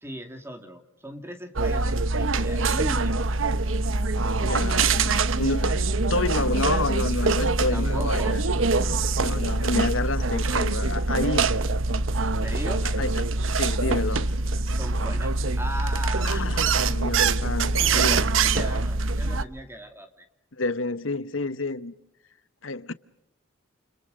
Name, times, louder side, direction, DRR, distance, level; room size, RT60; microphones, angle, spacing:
voice 1, 0.0-3.3 7.7-8.4 12.4-12.9 14.8-16.5 17.4-17.5 17.8-20.3, right 1 dB, 15° right, 2.5 m, -38 dB
sound 1, 1.6-19.4, right 3 dB, 80° right, 1.0 m, -24 dB
voice 2, 4.4-5.8 6.1-8.4 9.2-11.5 12.8-14.3 16.2-18.2 20.5-21.9 22.6-22.9, left 3 dB, 80° left, 1.1 m, -29 dB
29.5 x 29.5 x 5.2 m
head